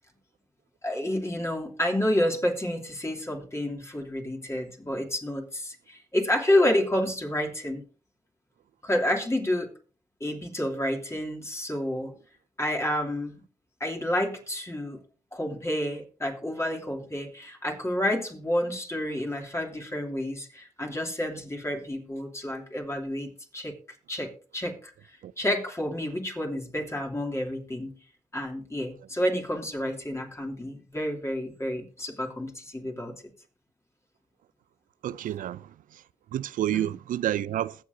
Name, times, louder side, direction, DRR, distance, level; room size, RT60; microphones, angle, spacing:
voice 1, 0.8-7.8 8.8-9.7 10.2-12.1 12.6-13.4 13.8-15.0 15.3-23.8 24.1-24.9 25.4-27.9 28.3-33.1 36.7-36.9, left 1 dB, 20° left, 2.8 m, -29 dB
voice 2, 35.0-35.7 36.3-37.8, right 12 dB, 85° right, 0.4 m, -29 dB
21.0 x 7.4 x 2.7 m
supercardioid pair, 45°, 14 cm